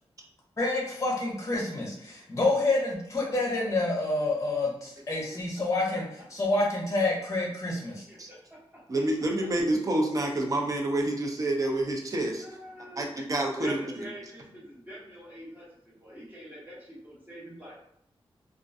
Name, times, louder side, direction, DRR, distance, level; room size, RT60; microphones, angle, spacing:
voice 1, 0.6-6.1 6.3-8.1, left 2 dB, 30° left, -2 dB, 0.7 m, -28 dB
voice 2, 8.1-8.6 12.4-13.1 13.6-15.7 16.0-17.8, right 1 dB, 20° right, -6 dB, 1.0 m, -43 dB
voice 3, 8.9-12.4 13.0-13.8, right 1 dB, 35° right, 1 dB, 0.5 m, -28 dB
2.3 x 2.2 x 2.5 m, 0.73 s
wide cardioid pair, 90°, 10 cm